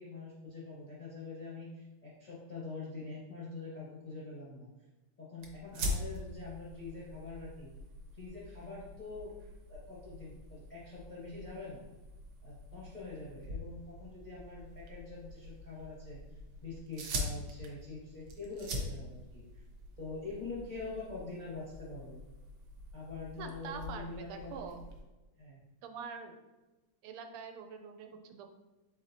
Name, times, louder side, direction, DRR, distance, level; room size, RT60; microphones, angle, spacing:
voice 1, 0.0-4.7 5.2-7.7 8.1-9.3 9.7-11.8 12.4-19.6 20.0-22.2 22.9-24.7 25.4-25.6, left 3 dB, 45° left, -8 dB, 0.5 m, -45 dB
sound 1, 5.4-25.0, equal, 65° right, 1.2 m, -44 dB
voice 2, 23.4-24.8 25.8-26.4 27.0-28.5, right 6 dB, 85° right, 6 dB, 1.5 m, -45 dB
4.6 x 4.1 x 2.7 m, 1.1 s
omnidirectional pair, 2.4 m